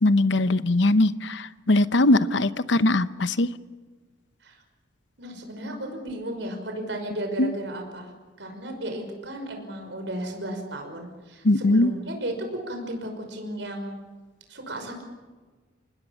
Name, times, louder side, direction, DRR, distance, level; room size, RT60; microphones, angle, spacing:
voice 1, 0.0-3.5 7.4-7.5 11.4-11.9, left 2 dB, 70° left, 14 dB, 0.9 m, -21 dB
voice 2, 5.2-8.1 8.4-14.0 14.5-15.0, right 1 dB, 70° right, 5 dB, 5.7 m, -34 dB
27.0 x 20.0 x 7.3 m, 1.3 s
head